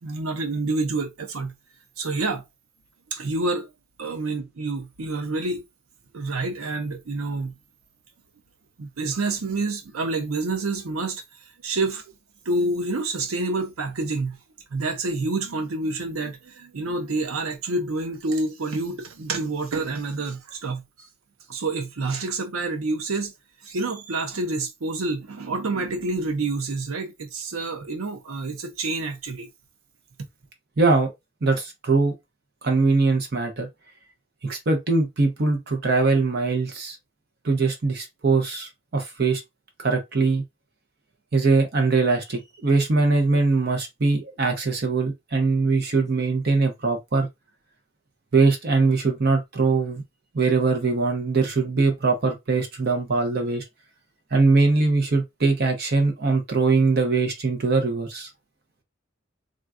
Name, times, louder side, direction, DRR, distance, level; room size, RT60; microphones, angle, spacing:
voice 1, 0.0-1.5 2.0-2.4 3.1-3.7 4.0-5.6 6.1-7.5 8.8-12.0 12.5-14.4 14.7-20.8 21.5-23.3 23.6-29.5, right 3 dB, 90° right, 0.6 m, -28 dB
voice 2, 30.8-31.1 31.4-32.1 32.6-33.7 34.4-37.0 37.4-39.4 39.8-40.4 41.3-47.3 48.3-50.0 50.3-53.6 54.3-58.3, right 3 dB, 50° right, 0.6 m, -22 dB
3.7 x 2.2 x 2.4 m
head